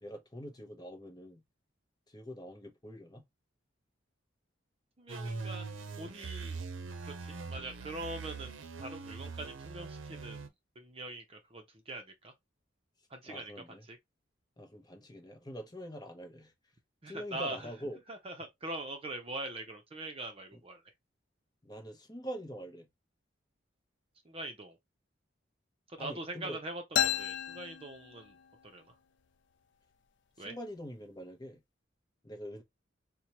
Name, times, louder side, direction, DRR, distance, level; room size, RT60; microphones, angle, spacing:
voice 1, 0.0-1.4 2.1-3.2 13.2-13.8 14.6-16.5 17.1-18.0 21.6-22.9 26.0-26.6 30.4-31.6 32.2-32.6, equal, 20° left, 0.8 m, -44 dB
voice 2, 5.0-6.6 7.0-10.5 10.8-12.3 13.1-13.5 13.8-14.0 17.0-17.7 18.1-20.8 24.2-24.8 25.9-28.3 28.6-28.9 30.4-30.5, right 2 dB, 30° right, 0.6 m, -43 dB
sound 1, 5.1-10.5, right 4 dB, 90° right, 0.6 m, -42 dB
sound 2, 27.0-28.7, left 10 dB, 65° left, 0.4 m, -33 dB
4.4 x 2.2 x 2.8 m
head